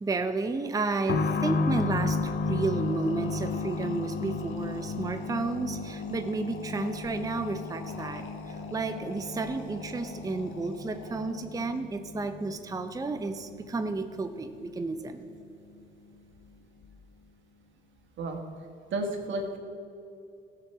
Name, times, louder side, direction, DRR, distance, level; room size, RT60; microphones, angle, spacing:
voice 1, 0.0-15.2, right 3 dB, 15° right, 8 dB, 0.6 m, -32 dB
sound 1, 1.1-15.5 15.8-15.9 16.8-16.9, left 4 dB, 55° left, 0.7 m, -34 dB
sound 2, 2.0-11.7, left 4 dB, 80° left, 1.1 m, -47 dB
voice 2, 18.9-19.6, right 2 dB, 70° right, 3 dB, 1.7 m, -31 dB
14.0 x 4.9 x 6.8 m, 2.8 s
cardioid pair, 90°, 20 cm